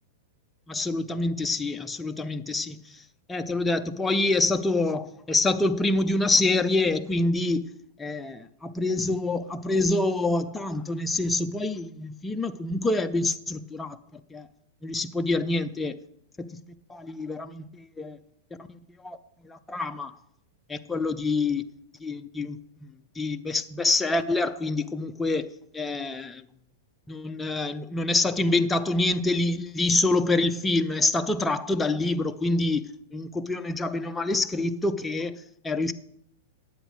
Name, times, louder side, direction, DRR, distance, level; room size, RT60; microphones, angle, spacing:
voice 1, 0.7-3.0 3.3-7.7 8.0-14.5 14.8-16.0 16.4-16.6 16.9-18.2 18.7-19.2 19.4-20.1 20.7-21.7 22.0-22.6 23.2-26.4 27.1-32.9 33.1-35.9, left 2 dB, 10° left, 0.5 m, -26 dB
10.0 x 8.0 x 4.6 m
supercardioid pair, 150°, 0 cm